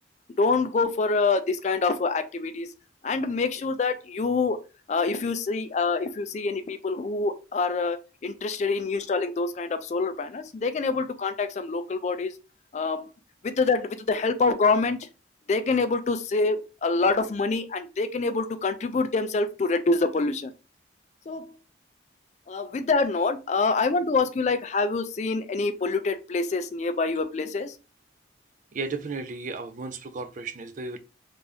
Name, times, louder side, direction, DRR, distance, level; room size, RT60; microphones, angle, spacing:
voice 1, 0.3-2.7 3.0-4.6 4.9-12.4 12.7-13.1 13.4-15.1 15.5-20.5 21.3-21.5 22.5-27.8, left 3 dB, 35° left, 0.3 m, -26 dB
voice 2, 28.7-31.0, right 4 dB, 40° right, 0.4 m, -34 dB
3.4 x 2.6 x 3.3 m
head